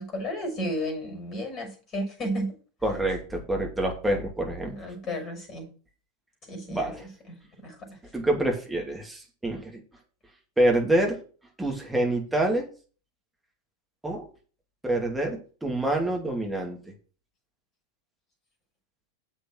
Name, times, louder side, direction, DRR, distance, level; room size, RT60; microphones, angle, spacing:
voice 1, 0.0-2.5 4.6-5.7 6.5-6.9 7.6-7.7, equal, 25° left, 2 dB, 6.3 m, -32 dB
voice 2, 2.8-4.7 6.7-7.1 8.1-9.8 10.6-11.2 11.6-12.7 14.0-14.3 14.8-16.9, right 1 dB, 5° right, 0 dB, 2.7 m, -26 dB
7.5 x 6.4 x 6.4 m, 0.39 s
figure-of-eight pair, 90°, 0 cm